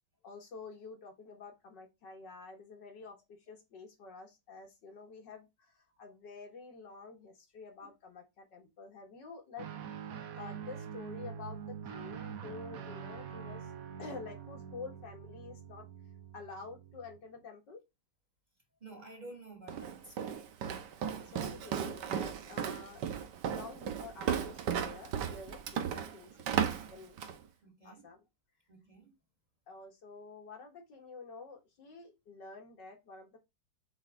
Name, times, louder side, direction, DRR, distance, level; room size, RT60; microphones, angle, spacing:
voice 1, 0.2-10.0 10.3-13.7 14.0-15.9 16.3-17.8 21.3-23.0 23.5-27.2 27.8-28.2 29.7-33.4, left 4 dB, 75° left, 2.3 m, -49 dB
Guitar, 9.6-17.2, right 7 dB, 60° right, 1.1 m, -45 dB
voice 2, 18.8-20.5 27.6-28.1 28.7-29.1, right 2 dB, 25° right, 1.6 m, -51 dB
Walk footsteps, 19.7-27.4, right 8 dB, 75° right, 1.5 m, -35 dB
7.9 x 4.1 x 3.6 m
omnidirectional pair, 1.9 m